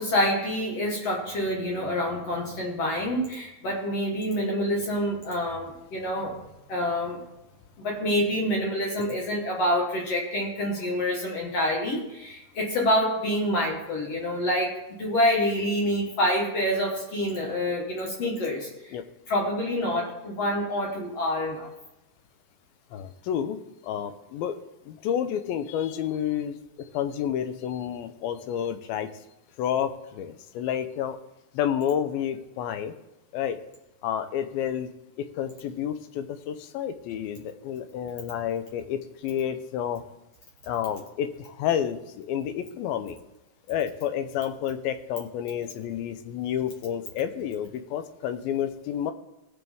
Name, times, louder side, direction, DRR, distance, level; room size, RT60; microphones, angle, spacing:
voice 1, 0.0-6.4 6.7-7.2 7.8-14.7 15.0-18.9 19.3-21.7, equal, 50° left, -2 dB, 2.3 m, -27 dB
voice 2, 22.9-23.6 23.8-24.6 24.9-29.1 29.6-31.2 31.5-32.9 33.3-33.6 34.0-34.9 35.2-40.0 40.6-43.2 43.7-49.1, left 9 dB, 80° left, 9 dB, 2.5 m, -30 dB
17.5 x 6.1 x 3.6 m, 0.95 s
omnidirectional pair, 4.3 m